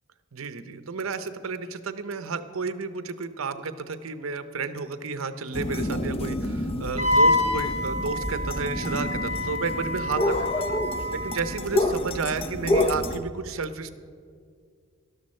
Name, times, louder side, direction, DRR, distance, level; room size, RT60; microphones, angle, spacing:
voice 1, 0.3-10.8 11.1-13.9, right 4 dB, 75° right, 11 dB, 0.7 m, -32 dB
sound 1, 5.5-13.2, left 1 dB, 25° left, 0.5 m, -28 dB
Wind instrument woodwind instrument, 7.0-11.6, left 1 dB, 35° right, 1.3 m, -27 dB
12.5 x 12.0 x 4.3 m, 2.1 s
head